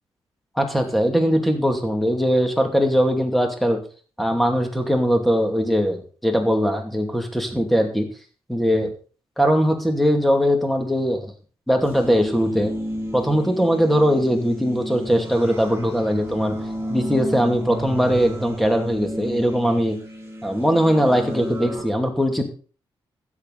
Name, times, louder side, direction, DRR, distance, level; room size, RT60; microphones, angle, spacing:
voice 1, 0.6-3.8 4.2-8.1 8.5-8.9 9.4-11.3 11.7-12.7 13.1-16.6 16.9-20.0 20.4-22.4, equal, ahead, 3 dB, 2.5 m, -20 dB
sound 1, 11.8-21.8, equal, 25° right, 4.8 m, -32 dB
13.0 x 9.6 x 4.1 m, 0.39 s
cardioid pair, 120°, 10 cm